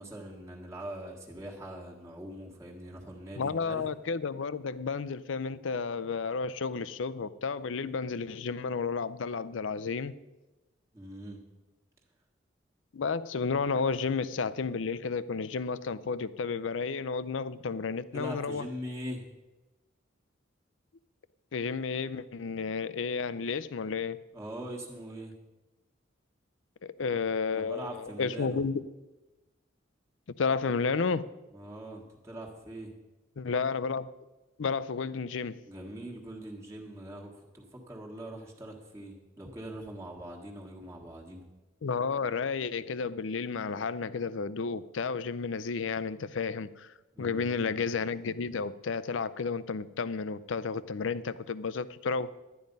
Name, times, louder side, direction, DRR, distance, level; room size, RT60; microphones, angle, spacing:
voice 1, 0.0-3.8 10.9-11.4 18.1-19.3 24.3-25.3 27.5-28.6 31.5-32.9 35.7-41.4 47.1-47.8, right 1 dB, 15° right, -2 dB, 1.5 m, -42 dB
voice 2, 3.3-10.2 12.9-18.7 21.5-24.2 26.8-28.8 30.4-31.2 33.4-34.1 34.6-35.6 41.8-46.9 47.2-52.3, left 5 dB, 75° left, 15 dB, 0.5 m, -32 dB
11.5 x 9.4 x 5.3 m, 1.1 s
head